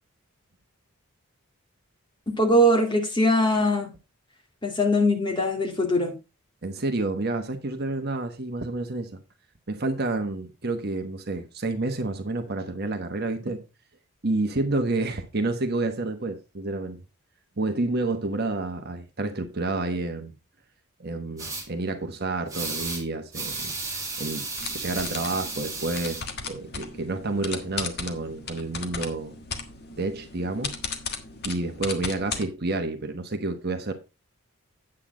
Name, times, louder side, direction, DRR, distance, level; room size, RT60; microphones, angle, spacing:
voice 1, 2.3-3.9 4.6-6.1, equal, 20° left, 2.3 m, -21 dB
voice 2, 6.6-9.2 9.7-13.6 14.2-17.0 17.6-20.3 21.0-23.7 24.2-24.5 24.7-29.4 30.0-30.8 31.4-33.9, right 2 dB, 45° right, 1.1 m, -29 dB
sound 1, 21.4-21.6 22.5-23.0 23.3-26.2, right 3 dB, 15° right, 3.3 m, -33 dB
sound 2, 24.6-32.4, left 5 dB, 45° left, 1.4 m, -36 dB
8.8 x 8.3 x 3.8 m
head